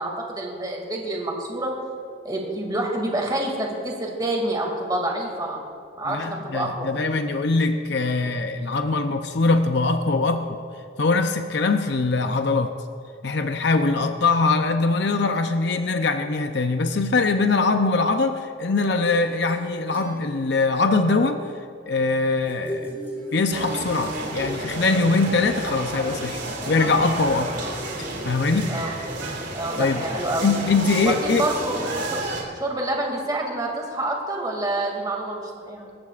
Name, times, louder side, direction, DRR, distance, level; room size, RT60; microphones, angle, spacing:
voice 1, 0.0-1.7 2.2-5.6 6.0-6.9 28.7-28.9 29.5-30.5 31.0-32.2 32.6-35.9, right 1 dB, 20° right, 0 dB, 2.4 m, -27 dB
voice 2, 6.1-10.6 11.0-12.7 13.2-21.5 21.9-22.9 23.3-27.5 28.0-28.7 29.8-30.0 30.4-31.5, left 3 dB, 60° left, 6 dB, 0.7 m, -22 dB
sound 1, 19.0-21.0 22.4-24.0, equal, 10° left, 3.5 m, -37 dB
sound 2, 23.5-32.4, right 2 dB, 60° right, 3.7 m, -31 dB
27.5 x 14.0 x 2.5 m, 2.3 s
head